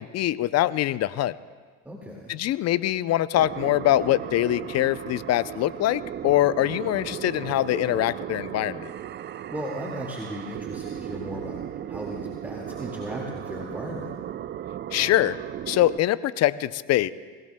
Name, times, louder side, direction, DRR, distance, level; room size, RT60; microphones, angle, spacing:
voice 1, 0.0-1.4 2.3-8.9 14.9-15.4 15.7-17.1, left 14 dB, 45° left, 17 dB, 0.5 m, -23 dB
voice 2, 1.8-2.3 9.5-14.1, equal, 5° right, -2 dB, 1.9 m, -36 dB
sound 1, 3.4-16.0, right 10 dB, 30° right, 0.4 m, -36 dB
22.5 x 17.0 x 2.2 m, 1.5 s
hypercardioid pair, 80°, 37 cm